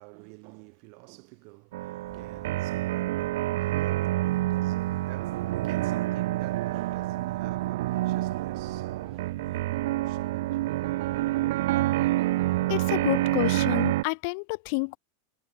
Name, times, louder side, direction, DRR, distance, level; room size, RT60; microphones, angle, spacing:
voice 1, 0.0-12.2 12.9-13.0, right 40 dB or more, 55° right, 2.6 m, -48 dB
sound 1, 1.7-14.0, right 17 dB, 70° right, 0.5 m, -28 dB
sound 2, 2.0-13.7, right 1 dB, 5° right, 2.5 m, -55 dB
voice 2, 12.7-15.0, left 35 dB, 60° left, 0.4 m, -29 dB
hypercardioid pair, 120°, 0 cm